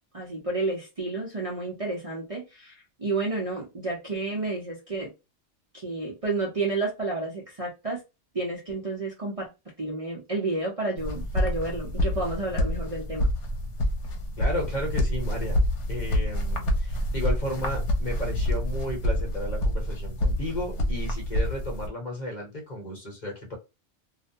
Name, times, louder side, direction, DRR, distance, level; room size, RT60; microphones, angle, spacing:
voice 1, 0.1-5.1 5.7-8.0 8.3-9.5 9.8-13.3, right 2 dB, 35° right, -4 dB, 0.6 m, -31 dB
sound 1, 11.0-21.9, left 1 dB, 75° left, 1.0 m, -27 dB
voice 2, 14.4-15.6 15.9-23.6, equal, 40° left, 0 dB, 1.0 m, -34 dB
2.5 x 2.1 x 2.6 m, 0.26 s
omnidirectional pair, 1.2 m